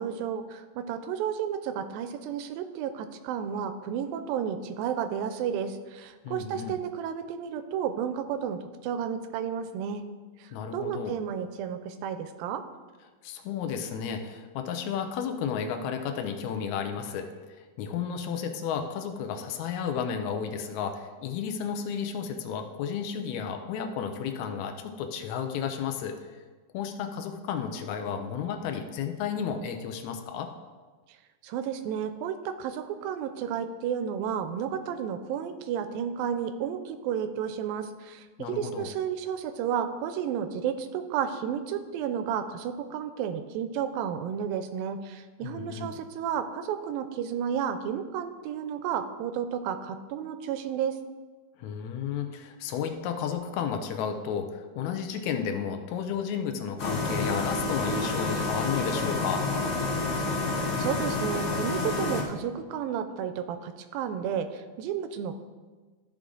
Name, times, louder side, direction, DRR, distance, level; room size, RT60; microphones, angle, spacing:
voice 1, 0.0-10.0 10.4-12.6 31.4-51.0 60.7-65.4, right 8 dB, 85° right, 10 dB, 2.4 m, -32 dB
voice 2, 6.2-6.8 10.5-11.1 13.2-17.3 17.6-26.2 26.7-30.5 38.4-38.9 45.4-46.0 51.6-59.4, left 7 dB, 80° left, 6 dB, 1.7 m, -32 dB
sound 1, 56.8-62.2, left 3 dB, 45° left, 1.0 m, -29 dB
13.5 x 4.8 x 3.8 m, 1.4 s
omnidirectional pair, 4.1 m